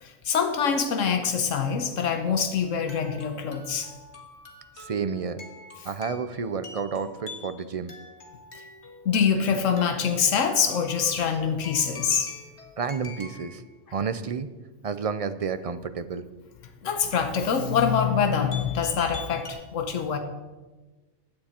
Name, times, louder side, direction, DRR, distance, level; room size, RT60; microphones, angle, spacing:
voice 1, 0.0-3.9 9.0-12.3 16.8-20.2, left 6 dB, 90° left, 7 dB, 1.3 m, -25 dB
sound 1, 2.6-13.6 18.5-19.5, left 4 dB, 65° left, 1.9 m, -45 dB
voice 2, 4.8-5.4 5.8-7.9 12.8-13.6 13.9-14.5 14.8-16.2, right 6 dB, 50° right, 12 dB, 0.4 m, -30 dB
15.5 x 9.6 x 4.4 m, 1.2 s
omnidirectional pair, 1.3 m